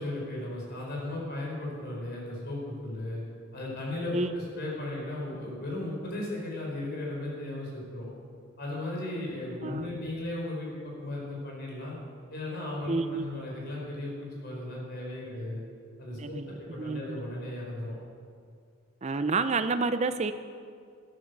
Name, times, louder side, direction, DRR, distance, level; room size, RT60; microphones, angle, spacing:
voice 1, 0.0-3.2 3.5-8.1 8.6-12.0 12.3-15.6 16.0-17.9, left 1 dB, 50° left, -3 dB, 4.4 m, -36 dB
voice 2, 12.9-13.3 16.2-17.2 19.0-20.3, right 3 dB, 30° right, 10 dB, 0.6 m, -29 dB
12.5 x 10.0 x 6.7 m, 2.2 s
head